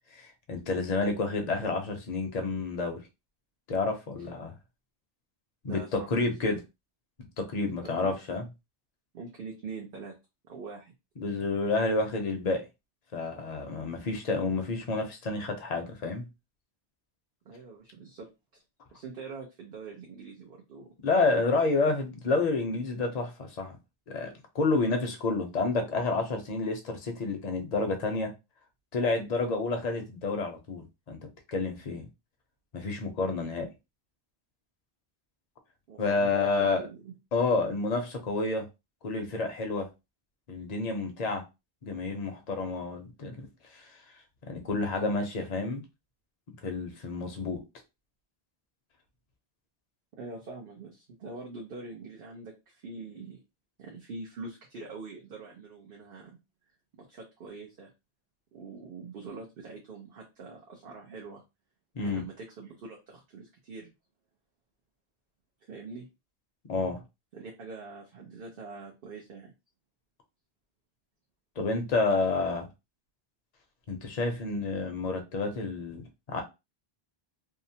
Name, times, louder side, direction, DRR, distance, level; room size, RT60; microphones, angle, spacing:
voice 1, 0.1-3.0 3.7-4.5 5.6-6.6 7.4-8.4 11.2-12.6 13.1-16.3 21.0-23.8 24.1-28.3 28.9-31.2 31.5-32.1 32.7-33.7 36.0-36.9 37.3-38.7 39.0-39.9 40.5-41.4 41.8-43.5 43.7-43.8 44.5-45.8 46.6-47.6 62.0-62.2 66.7-67.0 71.6-72.7 73.9-76.4, left 3 dB, 45° left, 0.7 m, -29 dB
voice 2, 5.7-6.3 7.8-8.1 9.1-10.1 10.5-10.9 17.4-18.3 18.5-18.6 18.9-20.9 35.9-37.1 50.2-53.4 53.8-56.4 57.1-57.9 58.5-61.4 62.0-63.9 65.6-66.1 67.3-69.5, right 4 dB, 65° right, 0.8 m, -44 dB
2.8 x 2.1 x 2.7 m
omnidirectional pair, 1.0 m